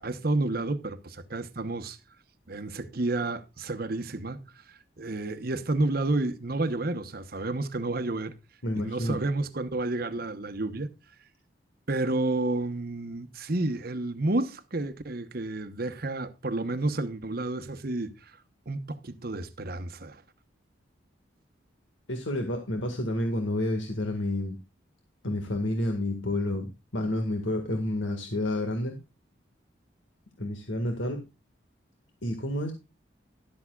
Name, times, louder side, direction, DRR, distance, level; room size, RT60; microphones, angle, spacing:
voice 1, 0.0-2.0 2.5-4.4 4.7-8.3 8.7-10.9 11.9-18.4 18.7-20.2, right 2 dB, 50° right, 1.0 m, -30 dB
voice 2, 8.6-9.2 22.1-24.6 25.2-29.0 30.4-31.2 32.2-32.7, left 1 dB, 85° left, 2.0 m, -30 dB
13.0 x 12.0 x 2.4 m
head